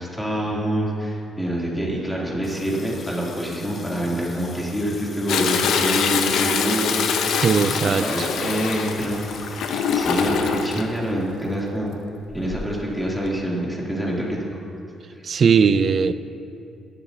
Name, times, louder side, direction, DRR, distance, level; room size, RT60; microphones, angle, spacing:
voice 1, 0.0-7.4 7.7-12.0 12.3-14.4 15.1-15.2, right 1 dB, 5° left, -5 dB, 3.0 m, -26 dB
Water tap faucet, 2.4-10.3, left 4 dB, 45° left, 0.9 m, -43 dB
Toilet flush, 5.3-10.8 12.3-12.8 13.3-13.4, left 6 dB, 80° left, 0.8 m, -24 dB
voice 2, 7.4-8.3 15.2-16.1, right 6 dB, 50° right, 13 dB, 0.5 m, -19 dB
16.0 x 12.0 x 2.8 m, 2.7 s
cardioid pair, 90°, 0 cm